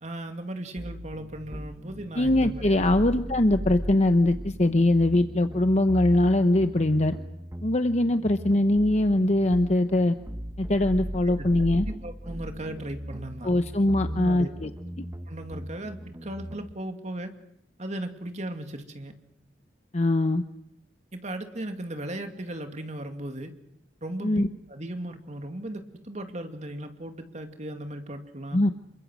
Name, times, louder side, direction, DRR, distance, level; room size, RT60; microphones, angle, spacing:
voice 1, 0.0-3.0 11.2-11.5 11.8-13.5 14.1-14.5 15.3-17.3 17.8-19.1 21.1-23.5 24.0-28.6, right 1 dB, 40° right, 6 dB, 2.4 m, -37 dB
sound 1, 0.8-16.7, equal, 15° right, 1.1 m, -38 dB
voice 2, 2.1-7.2 7.6-10.2 10.6-11.9 13.4-14.7 15.0-15.1 19.9-20.4 24.2-24.5 28.5-28.7, left 1 dB, 40° left, 9 dB, 0.9 m, -22 dB
28.0 x 23.5 x 6.3 m, 0.80 s
head